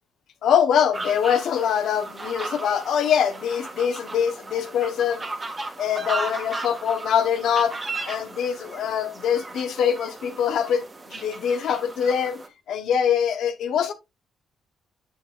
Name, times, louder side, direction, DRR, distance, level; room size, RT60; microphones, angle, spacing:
voice 1, 0.4-5.2 5.8-7.8 8.1-12.4 12.7-13.9, left 8 dB, 75° left, 1.1 m, -23 dB
Geese chattering, 0.9-12.5, right 2 dB, 30° right, 1.7 m, -36 dB
8.7 x 6.0 x 2.5 m
cardioid pair, 90°, 0 cm